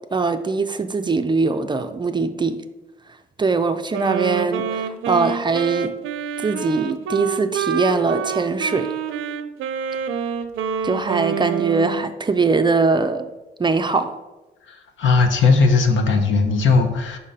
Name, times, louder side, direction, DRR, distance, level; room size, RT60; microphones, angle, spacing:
voice 1, 0.1-2.6 3.4-6.0 6.4-8.9 10.8-13.3 13.6-14.2, right 4 dB, 25° right, 0.4 m, -21 dB
Wind instrument woodwind instrument, 3.9-12.1, right 7 dB, 85° right, 0.5 m, -27 dB
voice 2, 14.7-17.2, left 4 dB, 70° left, 1.0 m, -18 dB
5.6 x 3.6 x 5.5 m
cardioid pair, 90°, 20 cm